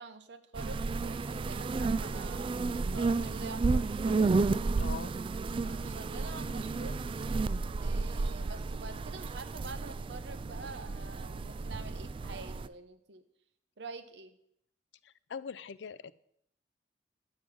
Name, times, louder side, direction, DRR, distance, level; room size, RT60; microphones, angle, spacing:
voice 1, 0.0-2.5 2.9-4.3 5.6-7.0 7.8-13.2 13.8-14.4, right 3 dB, 75° right, 10 dB, 1.0 m, -47 dB
sound 1, 0.5-12.7, right 3 dB, 30° right, 0.3 m, -32 dB
voice 2, 4.8-5.1 15.3-16.1, left 6 dB, 85° left, 16 dB, 0.5 m, -41 dB
9.9 x 7.2 x 6.2 m, 0.72 s
head